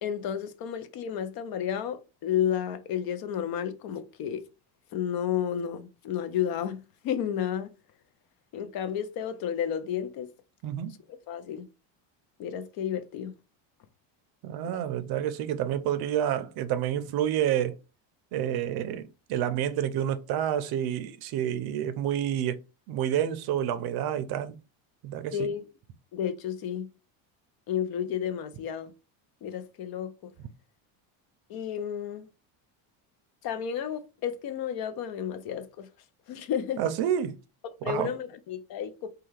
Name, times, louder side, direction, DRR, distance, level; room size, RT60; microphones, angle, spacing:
voice 1, 0.0-4.4 4.9-7.7 8.5-10.3 11.3-11.7 12.4-13.3 14.6-14.8 25.3-25.6 26.1-26.9 27.7-28.9 29.4-30.3 31.5-32.3 33.4-35.9 36.3-36.8 37.6-39.1, left 9 dB, 50° left, 0.5 m, -32 dB
voice 2, 10.6-11.0 14.4-17.7 18.3-22.6 22.9-24.6 25.0-25.5 36.8-37.4 37.8-38.1, right 10 dB, 50° right, 0.5 m, -29 dB
3.3 x 2.3 x 3.1 m
cardioid pair, 135°, 48 cm